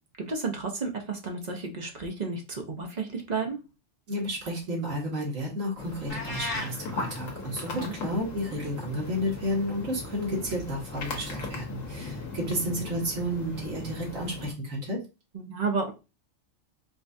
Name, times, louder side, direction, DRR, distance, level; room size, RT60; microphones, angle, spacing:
voice 1, 0.3-3.6 7.7-7.9 15.3-15.9, right 4 dB, 40° right, 2 dB, 0.7 m, -32 dB
voice 2, 4.1-15.0, equal, 75° right, -3 dB, 1.8 m, -32 dB
sound 1, 5.8-14.5, left 3 dB, 85° left, 1.3 m, -38 dB
sound 2, 6.1-6.7, left 2 dB, 65° left, 1.3 m, -33 dB
4.7 x 2.3 x 2.6 m, 0.28 s
omnidirectional pair, 1.3 m